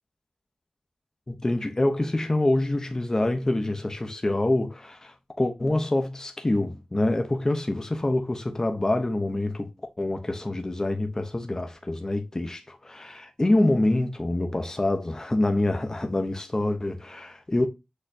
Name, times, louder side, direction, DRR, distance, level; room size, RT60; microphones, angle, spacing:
voice 1, 1.3-9.7 10.0-17.7, left 1 dB, 25° left, 0.6 m, -26 dB
6.5 x 3.0 x 2.5 m
wide cardioid pair, 75°, 2 cm